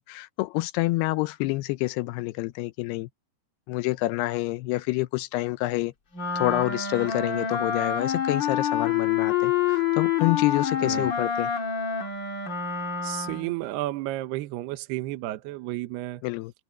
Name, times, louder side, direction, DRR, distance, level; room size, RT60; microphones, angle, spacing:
voice 1, 0.1-3.1 3.7-5.9 6.4-11.5 16.2-16.5, left 19 dB, 80° left, 2.5 m, -27 dB
Wind instrument woodwind instrument, 6.1-13.5, left 8 dB, 40° left, 1.7 m, -27 dB
voice 2, 13.0-16.2, right 16 dB, 75° right, 2.9 m, -32 dB
omnidirectional pair, 4.9 m